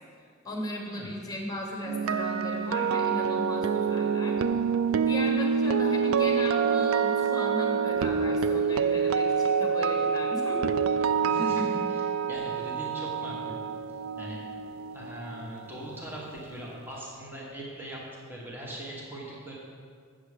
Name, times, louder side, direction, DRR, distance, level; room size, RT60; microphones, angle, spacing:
voice 1, 0.4-4.4 5.0-10.6, left 1 dB, 20° left, -1 dB, 1.2 m, -37 dB
sound 1, 1.9-15.9 16.2-16.5, right 6 dB, 85° right, 0.3 m, -27 dB
voice 2, 11.2-13.6 14.2-14.4 14.9-18.0 18.3-19.5, equal, 10° right, -4 dB, 1.2 m, -39 dB
7.9 x 7.3 x 5.0 m, 2.1 s
head